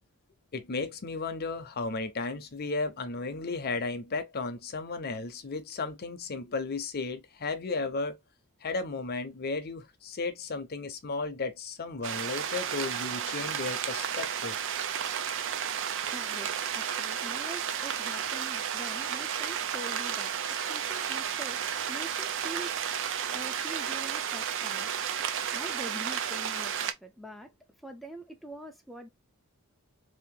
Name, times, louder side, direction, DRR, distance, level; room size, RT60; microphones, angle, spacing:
voice 1, 0.5-8.2 8.6-14.6, left 3 dB, 45° left, 0.6 m, -34 dB
sound 1, 12.0-26.9, right 8 dB, 55° right, 0.4 m, -32 dB
voice 2, 15.5-21.6 21.9-27.5 27.8-29.1, right 1 dB, ahead, 0.4 m, -45 dB
2.8 x 2.5 x 3.6 m
head